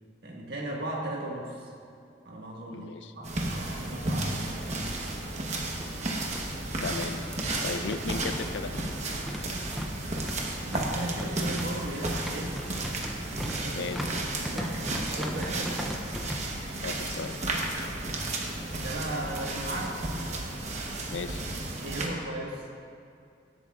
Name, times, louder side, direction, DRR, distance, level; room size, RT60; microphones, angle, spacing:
voice 1, 0.2-1.7 2.2-4.8 9.7-10.0 10.6-12.6 13.3-14.0 14.3-16.0 18.8-20.0 21.0-21.1 21.8-22.7, right 1 dB, 55° right, -2 dB, 1.7 m, -37 dB
voice 2, 2.7-3.1 6.8-7.2 7.6-8.9 13.7-14.1 16.8-17.4 21.1-21.4, left 4 dB, 70° left, 9 dB, 0.5 m, -35 dB
sound 1, 3.2-22.1, right 2 dB, 35° right, 1.0 m, -33 dB
sound 2, 4.3-4.4 4.7-4.8 5.6-16.4, equal, ahead, 0.5 m, -39 dB
17.5 x 8.3 x 2.4 m, 2.4 s
head